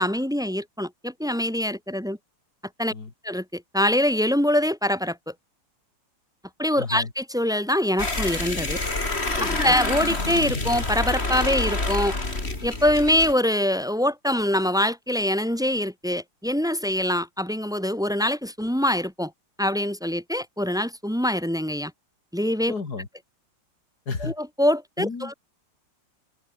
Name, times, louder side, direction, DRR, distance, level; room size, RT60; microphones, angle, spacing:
voice 1, 0.0-2.2 2.8-2.9 3.2-5.3 6.6-8.8 9.6-12.2 12.6-19.3 19.6-21.9 22.3-22.7 24.2-25.3, left 1 dB, ahead, 2.1 m, -24 dB
voice 2, 6.8-7.1 9.4-9.7 22.7-23.1 24.1-24.3 25.0-25.3, left 4 dB, 55° left, 3.4 m, -32 dB
sound 1, 8.0-13.3, left 2 dB, 30° left, 4.0 m, -27 dB
omnidirectional pair, 2.0 m